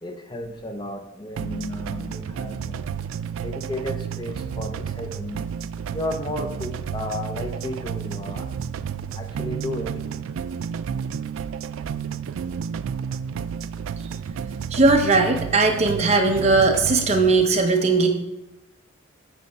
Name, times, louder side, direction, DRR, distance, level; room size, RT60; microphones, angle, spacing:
voice 1, 0.0-2.9 3.4-5.4 5.9-8.5 9.1-10.0, left 1 dB, 20° left, 4 dB, 0.6 m, -33 dB
sound 1, 1.4-17.4, right 7 dB, 75° right, 0.3 m, -31 dB
voice 2, 14.7-18.1, right 3 dB, 30° right, 3 dB, 0.8 m, -18 dB
9.5 x 3.3 x 5.4 m, 0.92 s
head